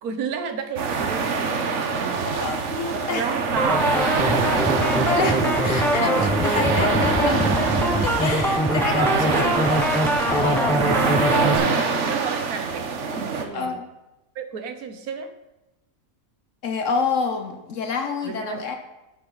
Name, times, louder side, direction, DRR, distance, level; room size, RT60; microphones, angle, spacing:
voice 1, 0.0-1.5 1.7-2.3 2.9-3.9 9.0-9.6 10.3-10.9 11.4-13.8 14.3-15.3 18.2-18.7, right 6 dB, 80° right, 8 dB, 1.4 m, -32 dB
sound 1, 0.8-13.4, right 4 dB, 55° right, 1.2 m, -24 dB
voice 2, 2.2-3.3 5.1-7.6 8.0-9.9 10.3-10.9 11.2-11.8 13.5-13.8 16.6-18.8, left 5 dB, 60° left, 6 dB, 1.1 m, -28 dB
sound 2, 3.6-11.6, equal, ahead, 0.6 m, -23 dB
11.0 x 8.6 x 4.0 m, 0.99 s
omnidirectional pair, 1.5 m